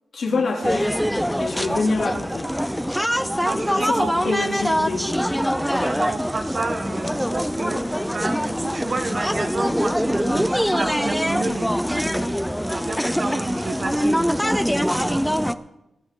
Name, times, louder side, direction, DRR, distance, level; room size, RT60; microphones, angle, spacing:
voice 1, 0.1-0.9 1.4-2.5 3.5-5.1, left 3 dB, 65° left, 0 dB, 3.0 m, -26 dB
sound 1, 0.6-15.5, equal, ahead, 0.5 m, -23 dB
voice 2, 3.2-4.4 5.6-15.3, right 3 dB, 40° right, 8 dB, 1.2 m, -31 dB
23.0 x 9.8 x 3.8 m, 0.90 s
wide cardioid pair, 135°, 0 cm